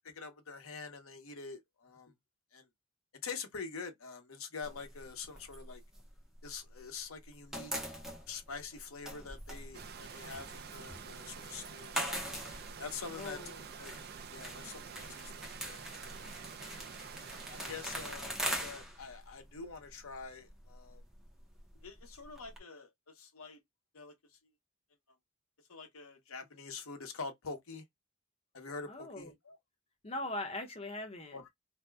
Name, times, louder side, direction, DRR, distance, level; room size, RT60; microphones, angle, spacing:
voice 1, 0.0-2.1 2.5-2.7 3.2-5.8 6.4-7.7 8.3-12.3 12.8-14.0 14.3-15.3 15.6-15.8 16.2-16.3 17.1-21.0 21.8-23.6 23.9-24.2 25.7-27.8 28.5-29.6 31.3-31.5, left 5 dB, 85° left, 0.9 m, -45 dB
sound 1, 4.6-6.9 7.1-22.6, equal, ahead, 0.7 m, -43 dB
sound 2, 9.7-18.2, right 6 dB, 50° right, 0.5 m, -48 dB
voice 2, 13.1-13.6 28.9-29.3 30.0-31.4, left 2 dB, 30° left, 0.8 m, -40 dB
2.7 x 2.1 x 3.3 m
head